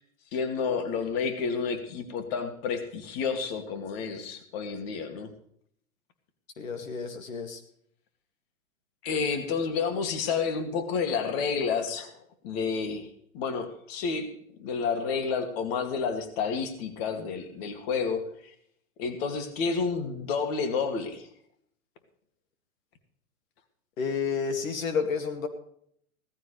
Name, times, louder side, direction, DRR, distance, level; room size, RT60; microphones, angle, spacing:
voice 1, 0.3-5.3 9.0-12.1 12.4-13.1 13.3-14.3 14.6-18.5 19.0-21.3, left 5 dB, 45° left, 7 dB, 2.5 m, -30 dB
voice 2, 6.6-7.6 24.0-25.5, left 5 dB, 70° left, 7 dB, 2.3 m, -30 dB
17.5 x 14.5 x 3.3 m, 0.67 s
hypercardioid pair, 130°, 41 cm